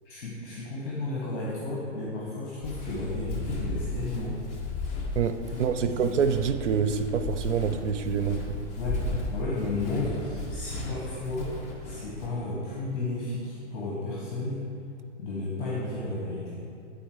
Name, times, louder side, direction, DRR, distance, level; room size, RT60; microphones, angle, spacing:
voice 1, 0.0-4.4 5.8-6.1 8.7-11.5 11.8-14.6 15.2-16.6, left 2 dB, 45° left, -5 dB, 1.8 m, -33 dB
Walk footsteps, 2.6-12.3, left 2 dB, 20° left, 0.9 m, -35 dB
voice 2, 5.2-8.6, right 6 dB, 80° right, 8 dB, 0.7 m, -26 dB
9.5 x 4.3 x 4.7 m, 2.5 s
hypercardioid pair, 140°, 35 cm